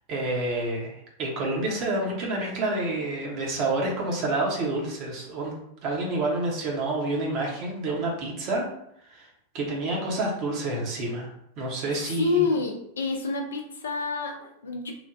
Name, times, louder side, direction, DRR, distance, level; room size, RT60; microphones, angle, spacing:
voice 1, 0.1-0.9 1.2-5.5 5.8-8.7 9.1-9.3 9.5-11.3 11.6-12.5, right 2 dB, 40° right, -1 dB, 0.7 m, -28 dB
voice 2, 11.9-14.9, left 4 dB, 65° left, 3 dB, 0.5 m, -28 dB
3.1 x 2.1 x 2.5 m, 0.75 s
figure-of-eight pair, 90°, 0 cm